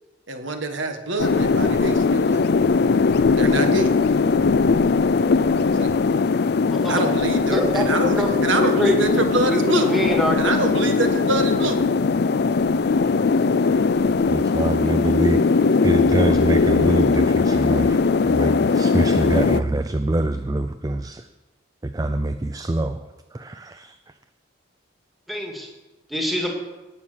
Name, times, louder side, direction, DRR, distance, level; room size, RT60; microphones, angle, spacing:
voice 1, 0.3-2.4 3.4-3.9 5.7-5.9 6.9-9.9 10.4-11.8, right 2 dB, 70° right, 6 dB, 1.7 m, -25 dB
sound 1, 1.2-19.6, left 4 dB, 50° left, 0.4 m, -19 dB
voice 2, 6.7-7.0 7.5-8.3 8.6-9.0 9.5-10.6 25.3-25.7 26.1-26.5, equal, ahead, 1 dB, 2.1 m, -24 dB
voice 3, 14.2-15.4 15.8-21.2 21.8-24.0, right 2 dB, 20° right, 9 dB, 0.4 m, -25 dB
18.5 x 7.2 x 6.4 m, 1.1 s
head